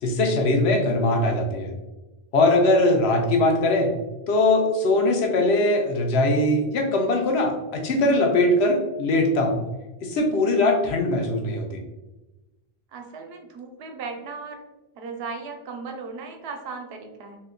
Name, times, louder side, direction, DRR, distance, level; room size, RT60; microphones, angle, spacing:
voice 1, 0.0-1.7 2.3-3.9 4.3-9.6 10.0-11.8, left 2 dB, 90° left, 3 dB, 0.9 m, -21 dB
voice 2, 12.9-14.6 14.9-17.4, right 4 dB, 80° right, 4 dB, 0.8 m, -36 dB
2.7 x 2.2 x 3.6 m, 1.0 s
omnidirectional pair, 1.0 m